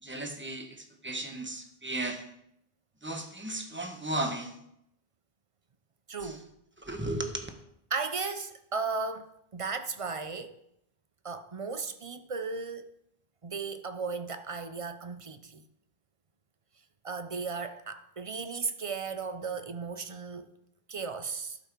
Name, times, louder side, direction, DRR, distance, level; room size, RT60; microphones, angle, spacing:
voice 1, 0.0-2.2 3.0-4.5 6.2-6.4 6.8-7.5, right 2 dB, 10° right, 1.0 m, -35 dB
voice 2, 6.1-6.5 7.9-10.5 11.2-12.9 13.4-15.6 17.0-20.5 20.9-21.6, right 4 dB, 40° right, 0.6 m, -35 dB
12.0 x 5.7 x 4.6 m
omnidirectional pair, 1.0 m